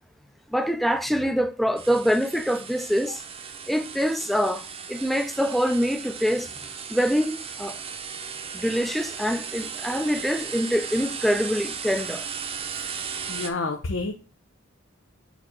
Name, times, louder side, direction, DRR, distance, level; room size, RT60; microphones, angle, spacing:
voice 1, 0.5-3.2 3.7-6.5 6.9-7.8 8.5-12.2, equal, ahead, 0.4 m, -25 dB
sound 1, 1.8-13.5, right 6 dB, 30° right, 0.7 m, -36 dB
voice 2, 13.3-14.2, left 3 dB, 85° left, 0.8 m, -29 dB
5.0 x 4.2 x 4.9 m
head